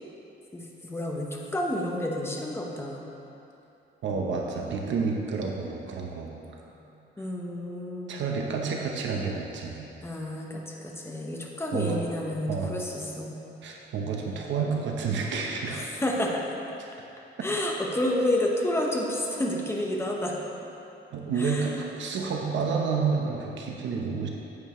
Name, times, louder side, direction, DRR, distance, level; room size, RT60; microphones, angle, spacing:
voice 1, 0.5-3.0 6.7-6.8 7.2-8.2 10.0-13.4 15.7-16.6 17.4-20.4 21.4-21.8, left 1 dB, 10° left, -1 dB, 1.0 m, -30 dB
voice 2, 4.0-6.3 8.1-9.8 11.7-12.0 12.5-12.8 13.6-15.9 17.4-17.5 21.1-24.3, right 5 dB, 75° right, 0 dB, 1.0 m, -29 dB
9.4 x 9.0 x 3.2 m, 2.8 s
cardioid pair, 135°, 19 cm